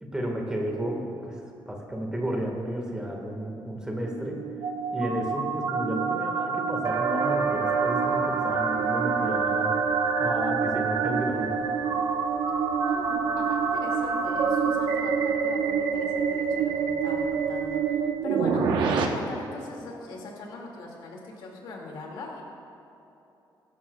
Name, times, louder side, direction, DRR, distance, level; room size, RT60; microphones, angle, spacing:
voice 1, 0.0-1.4 1.7-4.4 4.9-9.8 10.2-11.6, equal, 10° right, 0 dB, 1.7 m, -32 dB
sound 1, 4.0-19.0, right 6 dB, 80° right, 1.0 m, -27 dB
sound 2, 6.8-18.1, right 4 dB, 45° right, 1.0 m, -34 dB
voice 2, 12.9-22.4, left 2 dB, 80° left, -1 dB, 2.3 m, -40 dB
22.0 x 11.5 x 2.4 m, 2.9 s
cardioid pair, 155°, 8 cm